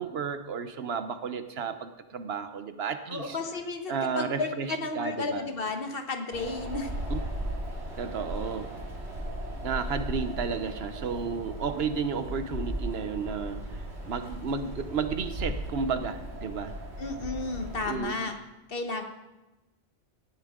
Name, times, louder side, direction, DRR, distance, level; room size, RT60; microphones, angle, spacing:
voice 1, 0.0-3.4 3.9-5.5 7.1-7.2 8.0-8.7 9.6-16.7 17.9-18.3, right 6 dB, 70° right, 10 dB, 1.0 m, -32 dB
voice 2, 3.1-6.9 17.0-18.4 18.7-19.0, left 3 dB, 60° left, 5 dB, 1.4 m, -33 dB
Wind, 6.3-17.9, equal, 90° right, 2.5 m, -36 dB
17.5 x 11.0 x 3.7 m, 1.0 s
omnidirectional pair, 1.1 m